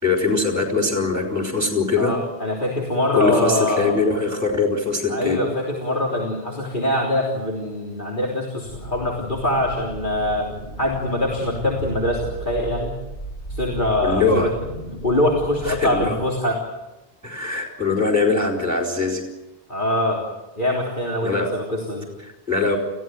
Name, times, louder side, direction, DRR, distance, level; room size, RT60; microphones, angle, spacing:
voice 1, 0.0-2.1 3.1-5.4 14.0-14.5 15.6-16.2 17.2-19.2 21.2-21.5 22.2-22.8, left 4 dB, 15° right, 2 dB, 4.2 m, -22 dB
voice 2, 2.0-3.9 5.1-10.5 10.8-12.9 13.5-14.5 15.0-16.6 19.7-20.2 20.6-22.1, left 1 dB, 55° left, -2 dB, 3.7 m, -23 dB
sound 1, 8.6-16.2, equal, 75° left, 3.3 m, -34 dB
29.5 x 15.5 x 9.2 m, 1.1 s
omnidirectional pair, 1.0 m